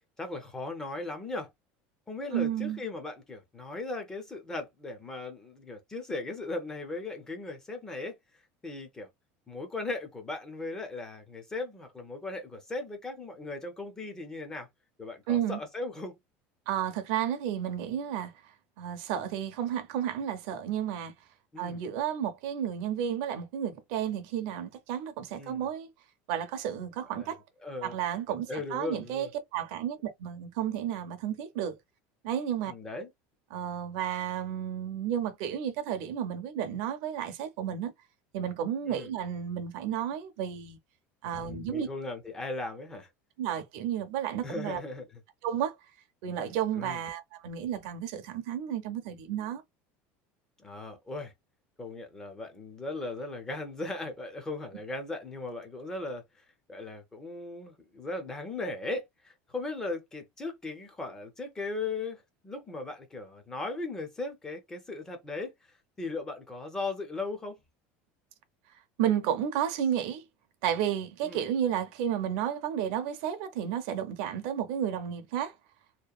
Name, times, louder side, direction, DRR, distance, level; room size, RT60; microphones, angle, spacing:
voice 1, 0.2-1.5 2.1-8.2 8.6-9.1 9.5-14.7 15.0-16.2 21.5-21.8 25.3-25.7 27.2-27.3 27.6-28.0 28.3-29.3 32.6-33.1 38.9-39.1 41.2-43.1 44.4-45.1 46.7-47.0 50.6-51.3 51.8-65.5 66.0-67.6 71.2-71.4, left 2 dB, 10° left, 0.4 m, -38 dB
voice 2, 2.3-2.8 15.3-15.6 16.7-18.3 18.8-21.1 21.6-25.9 26.3-27.4 27.8-31.8 32.2-32.7 33.5-37.9 38.3-40.8 41.2-41.9 43.4-44.8 45.4-45.7 46.2-49.6 69.0-70.2 70.6-75.5, right 9 dB, 60° right, 0.5 m, -32 dB
2.8 x 2.1 x 2.3 m
cardioid pair, 180°, 5 cm